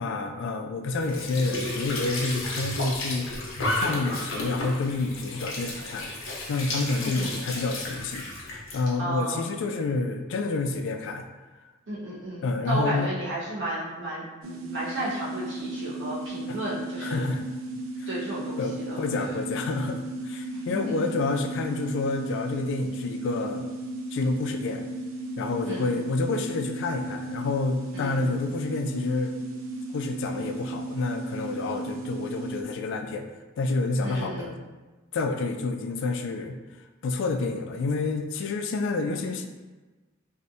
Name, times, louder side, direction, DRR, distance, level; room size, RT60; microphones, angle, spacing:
voice 1, 0.0-3.3 3.7-6.1 6.5-11.3 12.4-13.1 16.5-16.6 17.0-17.5 18.0-18.1 18.6-23.7 24.1-24.9 25.4-29.3 29.9-33.3 33.6-34.6 35.1-36.6 37.0-39.5, left 3 dB, 65° left, 6 dB, 0.3 m, -29 dB
Squeak / Sink (filling or washing) / Trickle dribble, 0.9-8.8, left 2 dB, 80° left, 0.8 m, -33 dB
voice 2, 7.0-7.3 9.0-9.4 11.9-17.3 18.1-19.3 20.5-21.1 25.7-25.9 27.9-28.3 34.0-34.6, right 1 dB, 65° right, -8 dB, 1.2 m, -34 dB
sound 1, 14.4-32.6, right 2 dB, 90° right, 0.5 m, -35 dB
3.2 x 2.6 x 2.6 m, 1.2 s
head